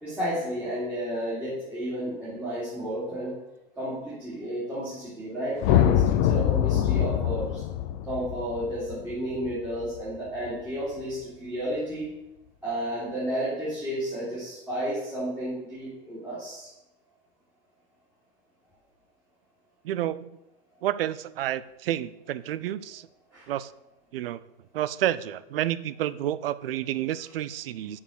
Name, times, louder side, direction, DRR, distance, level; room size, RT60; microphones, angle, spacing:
voice 1, 0.0-3.4 3.8-7.6 8.0-12.1 12.6-16.7 23.3-23.5 27.2-27.3, right 1 dB, 5° right, -11 dB, 3.0 m, -32 dB
sound 1, 5.6-10.0, left 11 dB, 25° left, 0.4 m, -24 dB
voice 2, 19.8-20.3 20.8-23.1 23.5-23.7 24.1-24.4 24.7-28.0, right 12 dB, 75° right, 17 dB, 0.6 m, -30 dB
6.8 x 5.8 x 6.5 m, 0.91 s
supercardioid pair, 150°, 29 cm